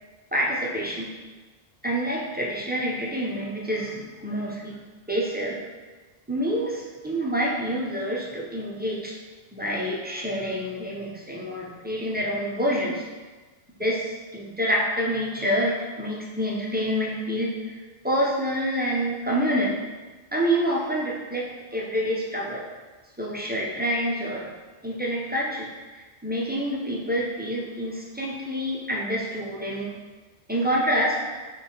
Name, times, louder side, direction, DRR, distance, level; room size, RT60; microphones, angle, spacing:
voice 1, 0.3-1.1 1.8-4.8 5.1-5.6 6.3-9.2 9.5-13.1 13.8-19.8 20.3-22.6 23.2-24.5 24.8-30.0 30.5-31.2, equal, 15° right, -4 dB, 0.4 m, -27 dB
4.1 x 3.0 x 3.8 m, 1.3 s
omnidirectional pair, 1.1 m